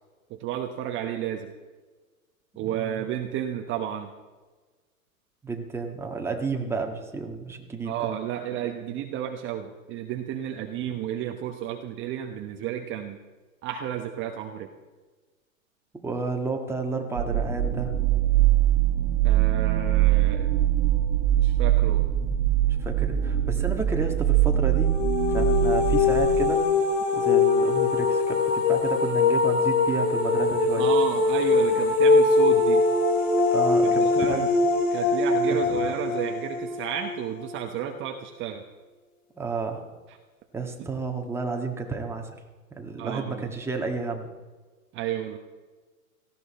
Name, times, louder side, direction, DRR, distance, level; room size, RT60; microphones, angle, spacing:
voice 1, 0.3-1.5 2.6-4.1 7.8-13.2 13.6-14.7 19.2-20.5 21.3-22.1 30.8-32.8 33.8-34.5 34.9-38.6 40.1-40.2 40.8-40.9 43.0-43.5 44.9-45.4, right 10 dB, 25° right, 4 dB, 1.1 m, -32 dB
voice 2, 2.6-3.0 5.4-7.9 16.0-18.1 22.6-24.9 25.3-26.7 27.1-30.9 33.5-34.5 35.5-35.9 39.4-39.9 40.5-42.3 42.8-44.3, right 4 dB, 5° right, 2 dB, 1.7 m, -31 dB
sound 1, 17.2-26.5, right 12 dB, 50° right, 1.2 m, -23 dB
sound 2, 24.8-37.6, left 4 dB, 55° left, 3.4 m, -22 dB
18.0 x 15.0 x 4.3 m, 1.3 s
hypercardioid pair, 125°, 44 cm